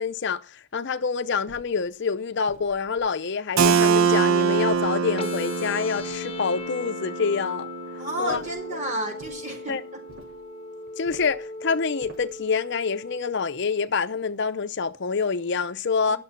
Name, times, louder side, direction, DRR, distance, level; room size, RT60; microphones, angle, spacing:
voice 1, 0.0-7.7 8.2-8.4 9.7-9.8 11.0-16.2, left 5 dB, 60° left, 0.6 m, -26 dB
sound 1, 1.5-1.9 2.5-3.1 3.6-4.2 4.7-5.4 6.0-6.7 8.3-8.7 9.2-9.5 10.1-10.5 11.0-11.5 12.0-12.4, right 2 dB, 70° right, 4.7 m, -49 dB
Keyboard (musical), 3.6-9.1, right 6 dB, 85° right, 0.8 m, -25 dB
sound 2, 5.2-13.2, left 3 dB, 25° left, 1.1 m, -38 dB
voice 2, 8.0-9.7 16.1-16.2, right 1 dB, 35° right, 4.4 m, -31 dB
12.0 x 6.8 x 7.1 m
head